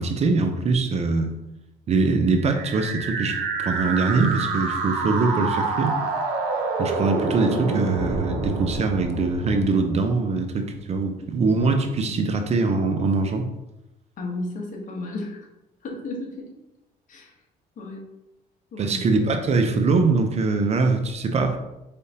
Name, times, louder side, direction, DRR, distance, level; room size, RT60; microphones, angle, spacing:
voice 1, 0.0-1.4 1.9-6.0 6.8-13.5 18.8-21.6, right 3 dB, 40° right, 6 dB, 0.5 m, -23 dB
sound 1, 2.4-10.3, right 4 dB, 85° right, 0.7 m, -27 dB
voice 2, 14.2-15.4 15.8-16.5 17.1-17.3 17.8-18.0 18.7-19.2, left 2 dB, 50° left, 1 dB, 1.1 m, -33 dB
4.7 x 3.4 x 2.7 m, 0.93 s
cardioid pair, 110°, 17 cm